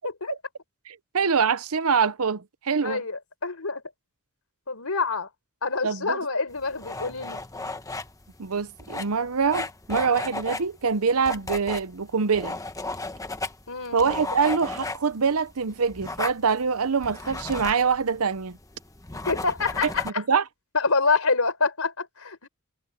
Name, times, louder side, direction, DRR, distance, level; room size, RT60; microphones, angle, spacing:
voice 1, 0.0-0.4 2.8-3.8 4.7-5.3 5.6-7.4 13.7-14.0 19.1-20.2 20.7-22.5, left 4 dB, 70° left, 4.5 m, -26 dB
voice 2, 0.9-3.0 5.8-6.2 8.4-12.6 13.9-18.6 20.0-20.4, right 5 dB, 70° right, 0.8 m, -24 dB
sound 1, 6.5-20.1, left 2 dB, 15° left, 1.1 m, -35 dB
head